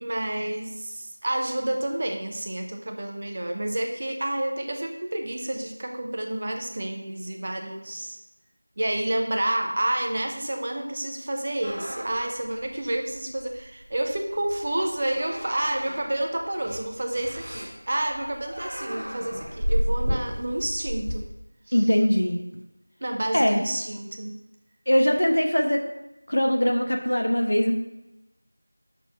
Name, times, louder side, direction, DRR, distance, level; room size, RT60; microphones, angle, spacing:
voice 1, 0.0-8.2 8.8-21.3 21.7-21.8 23.0-24.3, right 1 dB, 25° right, 3 dB, 0.5 m, -29 dB
sound 1, 11.6-21.2, equal, 5° right, 1.5 m, -32 dB
voice 2, 21.7-22.4 23.3-23.6 24.9-25.8 26.3-27.7, equal, 55° left, 3 dB, 1.1 m, -21 dB
6.2 x 5.8 x 5.5 m, 0.96 s
figure-of-eight pair, 175°, 0 cm